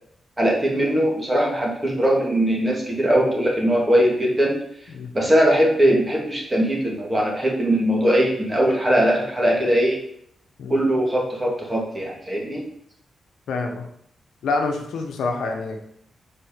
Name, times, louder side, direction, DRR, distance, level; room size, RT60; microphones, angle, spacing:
voice 1, 0.4-4.5 5.1-10.0 10.7-12.6, right 1 dB, 25° right, -2 dB, 2.4 m, -20 dB
voice 2, 13.5-13.8 14.4-15.8, left 3 dB, 85° left, 3 dB, 0.9 m, -26 dB
5.0 x 4.5 x 5.1 m, 0.71 s
cardioid pair, 55°, 0 cm